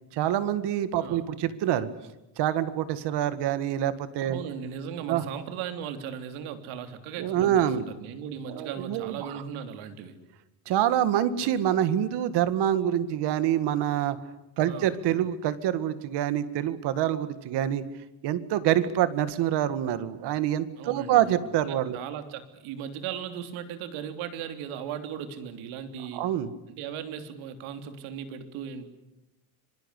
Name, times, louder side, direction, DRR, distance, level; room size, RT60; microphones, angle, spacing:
voice 1, 0.1-1.9 2.4-4.4 5.1-5.2 7.2-7.8 8.5-9.3 10.7-14.2 14.6-17.8 18.2-22.0 26.1-26.5, right 11 dB, 60° right, 13 dB, 1.9 m, -26 dB
voice 2, 4.3-10.2 14.6-15.0 20.8-21.2 21.6-26.3 26.7-28.9, right 8 dB, 90° right, 8 dB, 3.4 m, -37 dB
26.0 x 24.0 x 8.3 m, 0.96 s
cardioid pair, 175°, 47 cm